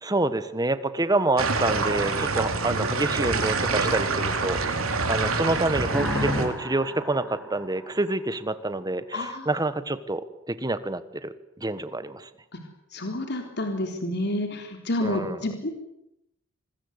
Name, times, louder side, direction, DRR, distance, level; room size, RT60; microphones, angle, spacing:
voice 1, 0.0-4.6 5.1-11.3 11.6-12.3 15.0-15.4, right 2 dB, 20° right, 13 dB, 1.4 m, -27 dB
sound 1, 1.4-6.5, right 3 dB, 80° right, 3.9 m, -26 dB
sound 2, 5.9-8.6, left 1 dB, ahead, 5.8 m, -32 dB
voice 2, 9.1-9.5 12.5-12.6 12.9-15.7, left 1 dB, 55° left, 4 dB, 3.8 m, -29 dB
26.0 x 21.5 x 8.2 m, 0.82 s
head